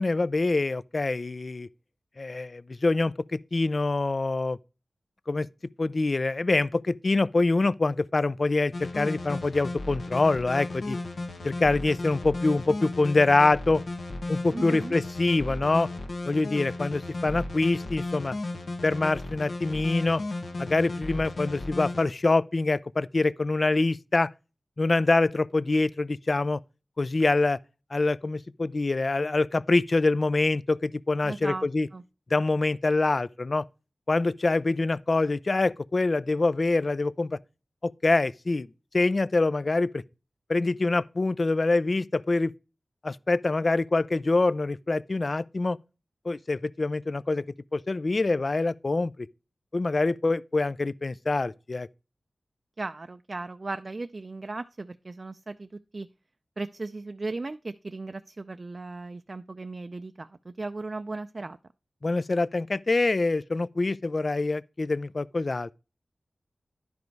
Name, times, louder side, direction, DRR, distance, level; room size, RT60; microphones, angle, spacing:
voice 1, 0.0-1.7 2.2-4.6 5.3-5.5 5.8-11.0 11.4-13.8 14.3-15.9 16.2-18.3 18.8-20.2 20.6-24.3 24.8-26.6 27.0-27.6 27.9-31.9 32.3-33.6 34.1-37.4 37.8-38.7 38.9-40.0 40.5-42.5 43.0-45.8 46.3-47.4 47.7-49.3 49.7-51.9 62.0-65.7, left 3 dB, 45° left, 0.3 m, -25 dB
sound 1, 8.7-22.0, left 2 dB, 85° left, 1.4 m, -35 dB
voice 2, 14.5-15.0 31.2-31.7 31.9-32.0 52.8-56.1 56.6-61.6, right 3 dB, 45° right, 0.4 m, -36 dB
10.5 x 5.1 x 4.6 m
wide cardioid pair, 80°, 0 cm